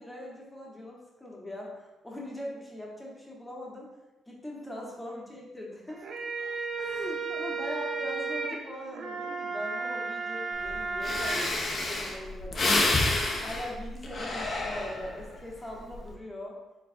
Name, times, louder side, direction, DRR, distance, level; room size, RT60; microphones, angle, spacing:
voice 1, 0.0-3.9 4.3-6.0 6.8-12.9 13.4-16.6, left 1 dB, 10° left, -3 dB, 1.3 m, -41 dB
sound 1, 5.9-11.5, right 4 dB, 60° right, 0.5 m, -34 dB
Breathing, 10.7-10.8 11.0-15.3 15.7-16.1, left 2 dB, 40° left, 0.8 m, -29 dB
4.6 x 4.0 x 2.7 m, 1.0 s
cardioid pair, 90°, 0 cm